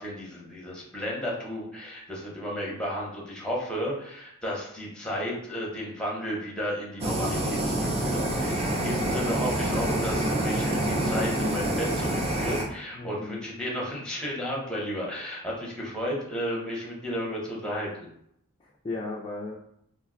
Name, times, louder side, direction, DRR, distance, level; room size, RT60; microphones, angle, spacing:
voice 1, 0.0-18.1, equal, 5° left, -4 dB, 0.8 m, -33 dB
Fire, 7.0-12.6, right 1 dB, 30° right, 0.5 m, -27 dB
voice 2, 12.9-13.4 18.6-19.6, left 3 dB, 25° left, -4 dB, 0.3 m, -36 dB
2.5 x 2.2 x 3.6 m, 0.72 s
head